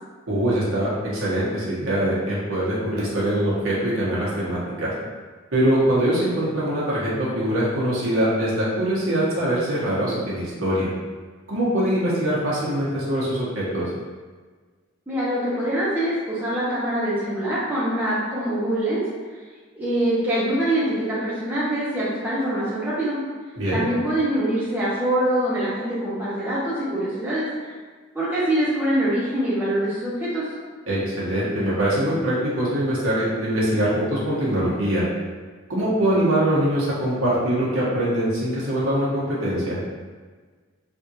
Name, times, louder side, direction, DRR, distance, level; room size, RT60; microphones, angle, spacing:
voice 1, 0.3-4.9 5.5-10.9 11.5-13.8 23.6-23.8 30.9-35.0 35.7-39.8, right 1 dB, 75° right, -8 dB, 1.0 m, -23 dB
voice 2, 15.1-19.0 19.7-23.2 23.7-27.5 28.1-30.4, right 1 dB, 10° right, -10 dB, 0.7 m, -24 dB
3.5 x 2.5 x 2.8 m, 1.5 s
head